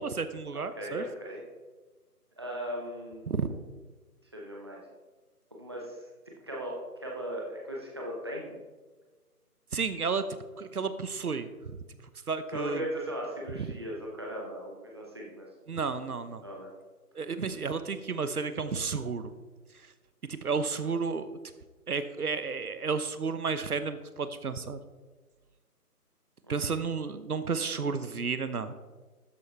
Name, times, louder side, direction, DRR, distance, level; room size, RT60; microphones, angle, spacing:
voice 1, 0.0-1.0 3.3-3.5 9.7-10.2 10.6-11.5 12.3-12.8 13.6-13.7 15.7-16.4 17.1-19.3 20.3-21.3 21.9-24.8 26.5-28.7, right 5 dB, 70° right, 11 dB, 1.0 m, -32 dB
voice 2, 0.5-1.4 2.4-3.3 4.3-4.8 5.5-6.1 6.4-8.6 12.5-15.5 16.4-16.7 26.4-26.5, equal, 15° right, -2 dB, 0.8 m, -38 dB
13.0 x 9.4 x 3.4 m, 1.3 s
figure-of-eight pair, 160°, 47 cm